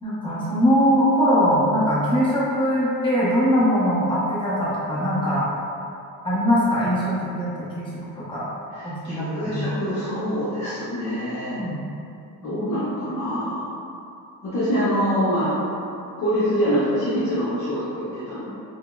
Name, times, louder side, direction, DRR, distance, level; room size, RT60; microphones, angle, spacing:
voice 1, 0.0-5.4 6.2-8.4 8.8-9.7 11.5-11.8, equal, 10° left, -9 dB, 0.7 m, -21 dB
voice 2, 8.7-11.6 12.4-13.6 14.4-15.5 16.2-18.5, equal, 45° left, -11 dB, 0.8 m, -25 dB
5.3 x 2.0 x 2.3 m, 2.6 s
cardioid pair, 130°, 39 cm